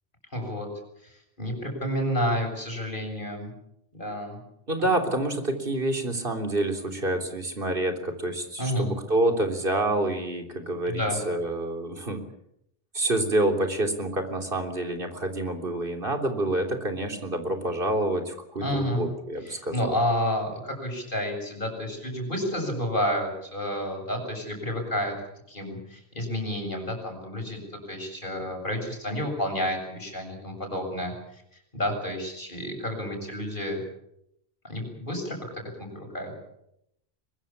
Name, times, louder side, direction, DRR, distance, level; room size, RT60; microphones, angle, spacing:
voice 1, 0.3-0.7 1.0-3.5 3.9-4.4 8.6-8.9 10.8-11.2 18.6-19.1 19.4-25.1 25.5-27.6 27.9-31.1 31.7-33.8 34.7-36.3, equal, 55° left, 3 dB, 7.5 m, -30 dB
voice 2, 4.7-12.2 12.9-19.9, right 1 dB, 60° right, 5 dB, 3.8 m, -27 dB
23.5 x 21.5 x 7.3 m, 0.77 s
omnidirectional pair, 1.1 m